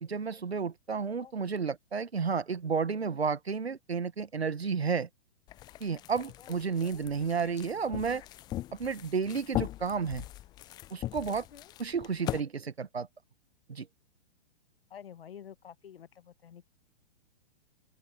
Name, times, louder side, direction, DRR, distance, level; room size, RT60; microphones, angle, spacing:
voice 1, 0.0-5.1 5.8-8.2 8.8-10.2 10.9-11.5 11.8-13.1 13.7-13.9, right 5 dB, 90° right, 1.1 m, -32 dB
sound 1, 5.5-12.4, left 15 dB, 15° left, 0.4 m, -40 dB
voice 2, 6.4-7.1 11.4-11.7 14.9-16.7, left 9 dB, 70° left, 1.1 m, -50 dB
open air
figure-of-eight pair, 120°, 30 cm